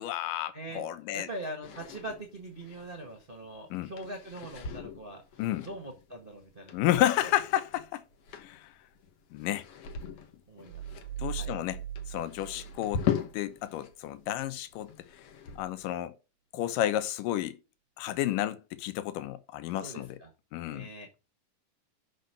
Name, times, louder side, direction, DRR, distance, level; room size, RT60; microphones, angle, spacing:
voice 1, 0.0-1.3 3.7-3.9 5.4-5.7 6.7-8.0 8.4-8.7 9.3-9.6 11.2-11.8 12.1-13.1 13.3-14.9 15.6-16.1 16.5-17.6 18.0-20.2 20.5-20.9, left 13 dB, 80° left, 2.5 m, -31 dB
voice 2, 0.5-0.9 1.1-6.8 7.2-7.3 10.5-11.0 11.3-11.5 12.8-13.0 19.7-20.3 20.7-21.1, right 1 dB, 50° right, 0.6 m, -42 dB
sound 1, 1.6-13.9 14.2-15.8, left 8 dB, 60° left, 1.7 m, -40 dB
sound 2, 10.7-13.5, right 10 dB, 85° right, 1.6 m, -40 dB
6.5 x 5.4 x 6.7 m
omnidirectional pair, 4.0 m